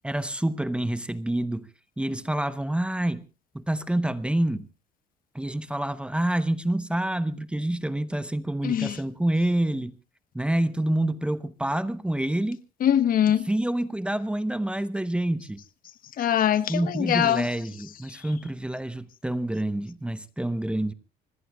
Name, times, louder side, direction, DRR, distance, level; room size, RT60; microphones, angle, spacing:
voice 1, 0.0-1.7 2.0-3.2 3.5-4.7 5.3-9.9 10.3-12.6 13.4-15.6 16.7-20.9, right 1 dB, 5° right, 0.9 m, -27 dB
voice 2, 8.6-9.0 12.8-13.5 16.2-17.5, left 10 dB, 55° left, 1.2 m, -22 dB
26.0 x 20.0 x 2.4 m
cardioid pair, 110°, 17 cm